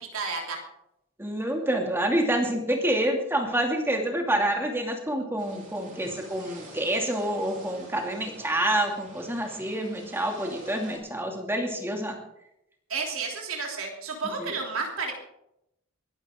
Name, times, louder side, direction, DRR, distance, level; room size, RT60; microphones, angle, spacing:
voice 1, 0.1-0.6 12.9-15.1, right 4 dB, 80° right, 1 dB, 3.2 m, -31 dB
voice 2, 1.2-12.2 14.4-14.5, right 1 dB, 10° right, 2 dB, 2.6 m, -27 dB
sound 1, 5.4-11.0, right 2 dB, 40° right, 5.0 m, -47 dB
22.5 x 12.0 x 3.8 m, 0.81 s
head